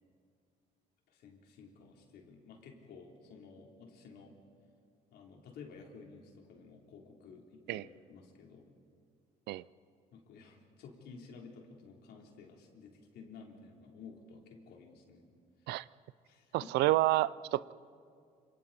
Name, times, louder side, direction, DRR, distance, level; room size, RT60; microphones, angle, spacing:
voice 1, 1.1-4.4 5.1-8.7 10.1-15.3 16.3-16.7, left 5 dB, 70° left, 0 dB, 3.8 m, -53 dB
voice 2, 16.5-17.7, right 16 dB, 80° right, 19 dB, 0.5 m, -29 dB
28.5 x 27.0 x 4.3 m, 2.3 s
cardioid pair, 110°, 17 cm